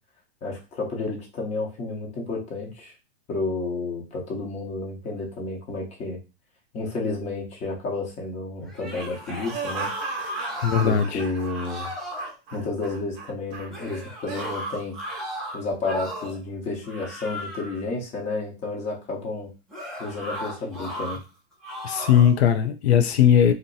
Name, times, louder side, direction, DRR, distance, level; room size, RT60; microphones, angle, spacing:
voice 1, 0.4-2.9 3.3-6.2 6.7-9.9 10.8-11.9 12.5-15.0 15.5-19.5 20.0-21.2, left 3 dB, 20° left, 0.9 m, -31 dB
sound 1, 8.7-11.1 11.4-12.3 13.7-16.4 16.8-17.8 19.7-21.2 21.6-22.4, equal, ahead, 0.4 m, -35 dB
sound 2, 9.5-14.6 15.1-15.3, right 4 dB, 30° right, 0.9 m, -37 dB
voice 2, 10.6-11.2 21.8-23.5, left 9 dB, 80° left, 0.5 m, -19 dB
2.6 x 2.2 x 3.8 m
hypercardioid pair, 150°, 32 cm